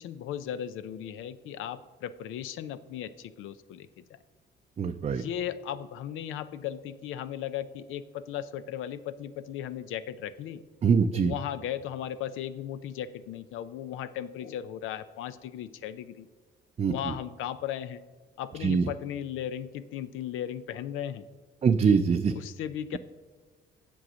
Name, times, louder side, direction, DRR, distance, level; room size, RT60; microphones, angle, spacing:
voice 1, 0.0-4.0 5.1-10.6 11.1-16.3 16.9-18.0 18.4-21.3 22.4-23.0, left 10 dB, 90° left, 14 dB, 0.5 m, -36 dB
voice 2, 4.8-5.2 10.8-11.3 16.8-17.1 18.6-18.9 21.6-22.3, right 6 dB, 35° right, 7 dB, 0.4 m, -24 dB
7.8 x 7.1 x 6.2 m, 1.3 s
cardioid pair, 90°, 20 cm